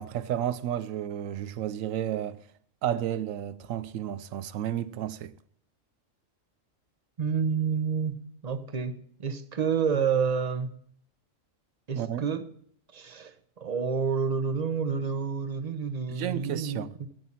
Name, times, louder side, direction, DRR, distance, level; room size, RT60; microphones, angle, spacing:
voice 1, 0.0-2.4 2.8-5.3 11.9-12.3 16.1-16.9, right 11 dB, 80° right, 1.0 m, -32 dB
voice 2, 7.2-10.8 11.9-12.5 12.9-16.8, right 6 dB, 35° right, 0.8 m, -29 dB
13.5 x 9.2 x 4.2 m
omnidirectional pair, 1.4 m